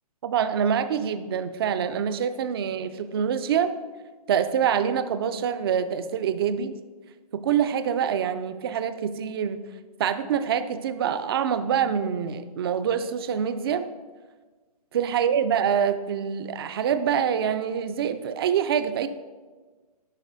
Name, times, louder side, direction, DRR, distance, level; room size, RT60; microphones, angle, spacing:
voice 1, 0.2-3.7 4.3-6.7 7.3-9.6 10.0-13.9 14.9-19.1, right 8 dB, 40° right, 11 dB, 0.4 m, -25 dB
10.5 x 4.8 x 2.6 m, 1.4 s
hypercardioid pair, 145°, 20 cm